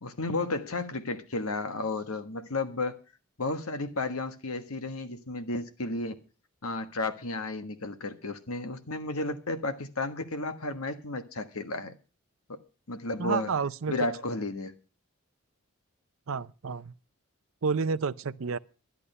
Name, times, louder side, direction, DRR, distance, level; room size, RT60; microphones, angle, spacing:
voice 1, 0.0-3.0 3.4-6.2 6.6-11.9 12.5-12.6 12.9-13.5 13.9-14.7, left 2 dB, 75° left, 1.4 m, -33 dB
voice 2, 13.2-13.9 16.3-16.9 17.6-18.6, right 5 dB, 65° right, 0.5 m, -30 dB
11.5 x 11.0 x 5.5 m
head